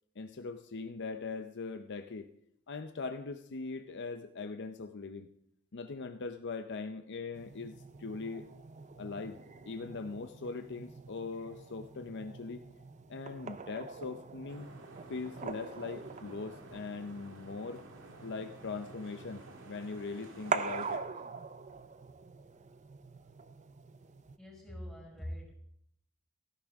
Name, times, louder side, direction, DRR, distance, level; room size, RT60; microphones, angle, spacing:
voice 1, 0.2-2.3 2.7-5.3 5.7-8.5 9.0-9.4 9.7-12.6 13.1-14.7 15.1-17.8 18.2-21.0, left 4 dB, 55° left, 8 dB, 0.6 m, -41 dB
sound 1, 7.3-24.4, right 5 dB, 35° right, 0.5 m, -44 dB
sound 2, 14.5-21.0, right 2 dB, 65° right, 1.9 m, -52 dB
voice 2, 24.4-25.5, equal, ahead, -1 dB, 5.3 m, -43 dB
16.0 x 13.5 x 3.6 m, 0.71 s
head